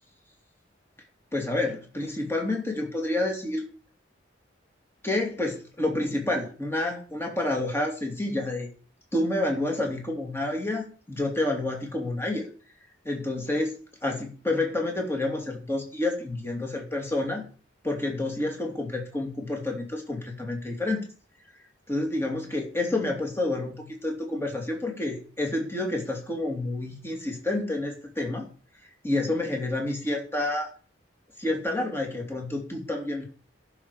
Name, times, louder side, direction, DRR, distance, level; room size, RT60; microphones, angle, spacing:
voice 1, 1.3-3.6 5.0-8.7 9.1-12.5 13.0-13.7 14.0-17.4 17.8-21.1 21.9-28.5 29.0-30.7 31.4-33.2, left 2 dB, 15° left, 1 dB, 2.7 m, -29 dB
14.5 x 6.7 x 4.9 m, 0.39 s
head